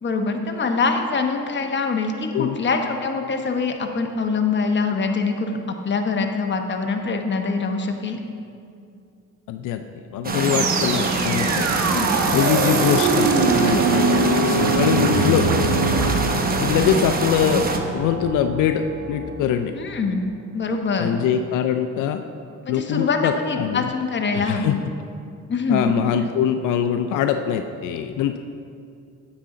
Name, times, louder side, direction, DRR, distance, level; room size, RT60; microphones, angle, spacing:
voice 1, 0.0-8.2 11.9-12.1 19.7-20.2 20.5-21.2 22.6-24.8 25.5-25.9 26.2-26.3, left 4 dB, 40° left, 4 dB, 1.0 m, -24 dB
voice 2, 9.5-9.8 10.1-11.7 12.3-15.5 16.6-17.7 17.9-19.7 21.0-22.2 22.7-23.8 24.3-24.7 25.7-28.4, left 9 dB, 85° left, 8 dB, 0.5 m, -23 dB
sound 1, 10.2-17.8, right 3 dB, 30° right, 0.9 m, -25 dB
sound 2, 10.4-19.6, right 3 dB, 70° right, 1.1 m, -23 dB
9.5 x 8.5 x 3.8 m, 2.4 s
cardioid pair, 90°, 30 cm